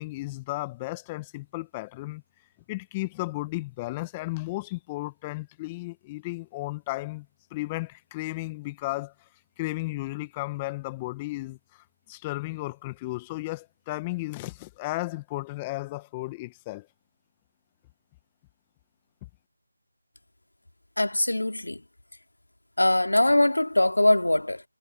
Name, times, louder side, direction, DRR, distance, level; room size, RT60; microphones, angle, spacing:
voice 1, 0.0-2.2 2.7-9.1 9.6-16.9, left 21 dB, 15° left, 1.4 m, -34 dB
voice 2, 21.0-21.8 22.8-24.6, left 1 dB, 80° left, 2.7 m, -22 dB
figure-of-eight pair, 160°, 0 cm